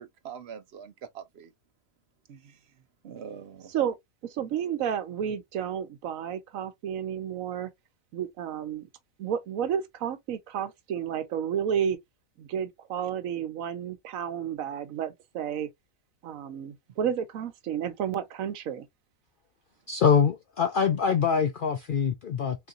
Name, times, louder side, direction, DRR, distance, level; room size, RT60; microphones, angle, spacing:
voice 1, 0.0-1.5 2.3-2.6 3.0-3.7, right 7 dB, 60° right, 0.7 m, -43 dB
voice 2, 4.2-7.7 8.1-8.9 9.2-12.0 12.4-15.7 16.2-18.9, right 8 dB, 80° right, 1.1 m, -31 dB
voice 3, 19.9-22.6, left 6 dB, 65° left, 0.5 m, -24 dB
3.8 x 3.0 x 2.5 m
omnidirectional pair, 1.4 m